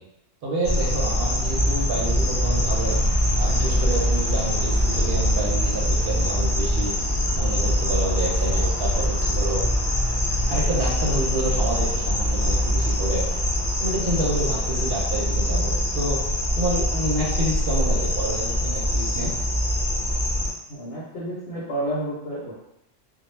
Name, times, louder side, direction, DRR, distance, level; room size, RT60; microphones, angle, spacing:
voice 1, 0.4-3.0 3.4-6.9 7.3-9.6 10.5-13.4 13.8-16.2 16.6-19.3, right 1 dB, 65° right, -3 dB, 0.7 m, -28 dB
sound 1, 0.6-20.5, equal, 40° left, 0.7 m, -23 dB
voice 2, 20.7-22.5, right 1 dB, 75° left, -7 dB, 0.9 m, -30 dB
2.1 x 2.0 x 3.0 m, 0.85 s
omnidirectional pair, 1.1 m